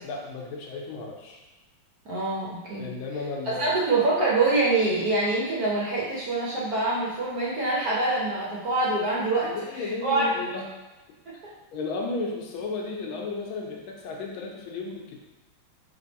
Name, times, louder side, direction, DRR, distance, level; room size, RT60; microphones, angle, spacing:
voice 1, 0.0-1.4 2.8-3.8 9.4-10.7 11.7-15.2, left 3 dB, 75° left, 0 dB, 1.5 m, -34 dB
voice 2, 2.0-2.9 3.5-9.5 9.8-10.3, right 2 dB, 60° right, -6 dB, 1.0 m, -25 dB
3.4 x 3.0 x 4.1 m, 1.1 s
omnidirectional pair, 2.3 m